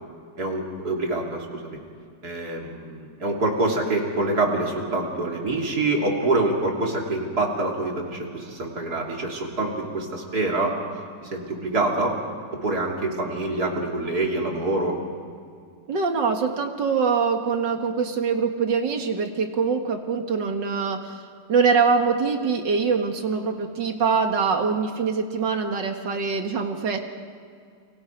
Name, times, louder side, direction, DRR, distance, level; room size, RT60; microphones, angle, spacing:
voice 1, 0.4-1.8 2.2-10.8 11.2-12.2 12.6-15.0, right 2 dB, 55° right, 0 dB, 3.6 m, -26 dB
voice 2, 15.9-21.2 21.5-27.0, right 5 dB, 70° right, 4 dB, 2.4 m, -23 dB
30.0 x 23.5 x 4.7 m, 2.2 s
omnidirectional pair, 2.0 m